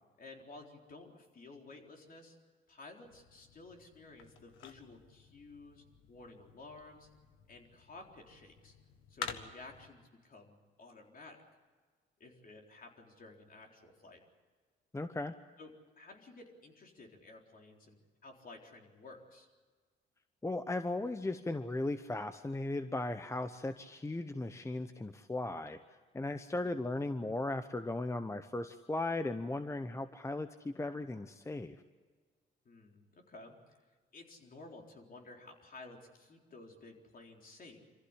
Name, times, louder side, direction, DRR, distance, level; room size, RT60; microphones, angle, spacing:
voice 1, 0.2-2.4 2.7-7.1 7.5-8.7 9.1-11.4 12.2-14.2 15.6-19.5 32.6-33.8 34.1-37.9, left 3 dB, 45° left, 2 dB, 4.0 m, -54 dB
sound 1, 3.0-9.9, left 6 dB, 85° left, 1.6 m, -50 dB
voice 2, 14.9-15.3 20.4-25.8 26.1-31.8, left 2 dB, 15° left, 10 dB, 0.9 m, -37 dB
25.5 x 15.0 x 9.8 m, 1.5 s
cardioid pair, 90°, 20 cm